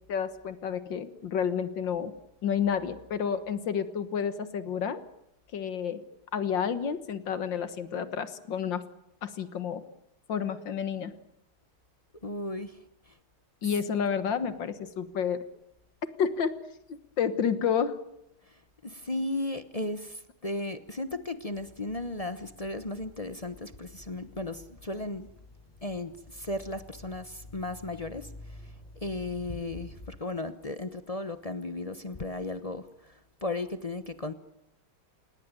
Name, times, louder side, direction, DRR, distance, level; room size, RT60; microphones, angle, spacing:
voice 1, 0.1-2.1 2.4-5.0 5.5-6.0 6.3-8.8 9.2-9.8 10.3-11.2 13.6-15.4 16.2-16.5 16.9-18.0, left 7 dB, 65° left, 12 dB, 2.0 m, -30 dB
voice 2, 12.2-12.8 13.6-13.8 18.8-25.3 25.8-28.3 29.0-33.1 33.4-34.3, left 2 dB, 35° left, 11 dB, 0.5 m, -35 dB
sound 1, 21.4-30.2, left 2 dB, 15° left, 6.2 m, -49 dB
28.5 x 18.0 x 9.1 m, 0.81 s
omnidirectional pair, 2.3 m